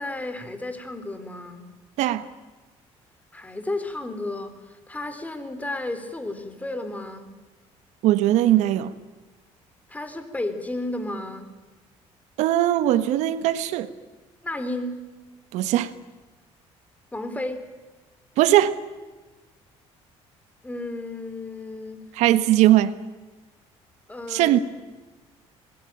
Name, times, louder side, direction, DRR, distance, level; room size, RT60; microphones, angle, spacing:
voice 1, 0.0-1.7 3.3-7.3 9.9-11.5 14.4-15.0 17.1-17.7 20.6-22.0 24.1-24.6, left 2 dB, 10° left, 3.7 m, -33 dB
voice 2, 8.0-8.9 12.4-13.9 15.5-15.9 18.4-18.8 22.1-22.9 24.3-24.6, right 13 dB, 85° right, 1.5 m, -19 dB
26.0 x 21.0 x 9.0 m
cardioid pair, 115°, 12 cm